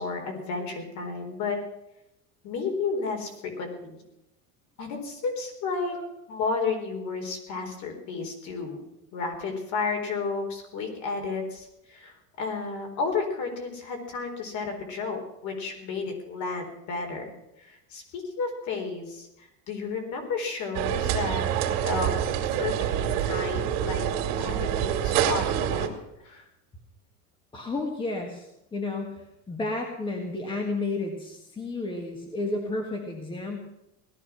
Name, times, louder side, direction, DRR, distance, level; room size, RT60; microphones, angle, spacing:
voice 1, 0.0-1.6 2.4-4.0 4.8-6.0 6.3-8.8 9.1-17.3 17.6-21.5 21.8-22.1 22.6-24.1 24.4-26.0 26.2-26.4, left 4 dB, 45° left, 3 dB, 4.1 m, -32 dB
sound 1, 20.7-25.9, right 10 dB, 70° right, 2.7 m, -26 dB
voice 2, 27.5-33.6, left 2 dB, 15° left, 2 dB, 1.6 m, -32 dB
18.0 x 13.0 x 6.0 m, 0.87 s
cardioid pair, 175°, 38 cm